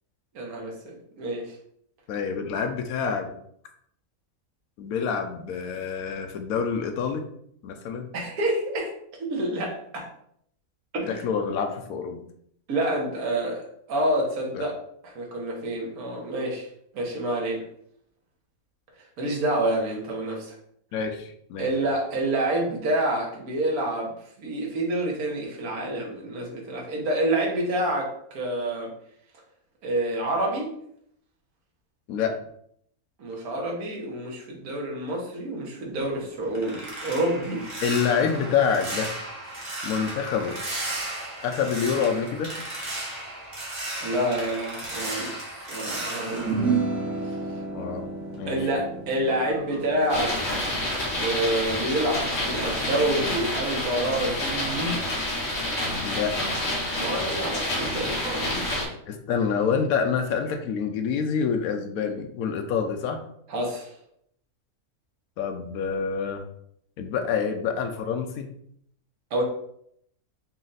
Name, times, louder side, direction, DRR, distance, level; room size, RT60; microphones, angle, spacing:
voice 1, 0.3-1.5 8.1-8.9 9.2-10.1 10.9-11.2 12.7-14.7 15.0-16.7 16.9-17.6 19.2-20.5 21.6-24.1 24.4-28.9 29.8-30.7 33.2-37.7 44.0-46.7 47.2-47.4 48.5-50.3 51.2-55.0 57.0-58.9 63.5-63.9 69.3-69.4, right 1 dB, 75° right, -1 dB, 1.5 m, -28 dB
voice 2, 2.1-3.3 4.8-7.2 7.6-8.1 11.1-12.2 14.5-14.6 20.9-21.7 32.1-32.4 37.8-39.1 39.8-40.5 41.4-42.5 47.7-48.1 48.4-48.7 56.0-56.4 59.1-63.2 65.4-66.4 67.0-68.5, left 6 dB, 75° left, 5 dB, 1.0 m, -27 dB
sound 1, 36.0-47.7 48.0-50.7 51.0-51.3 51.7-51.9, right 1 dB, 35° right, 1.1 m, -36 dB
sound 2, 46.4-52.9, right 4 dB, ahead, 0.4 m, -32 dB
sound 3, 50.1-58.9, left 1 dB, 50° left, 1.5 m, -28 dB
4.3 x 2.4 x 3.9 m, 0.69 s
omnidirectional pair, 1.6 m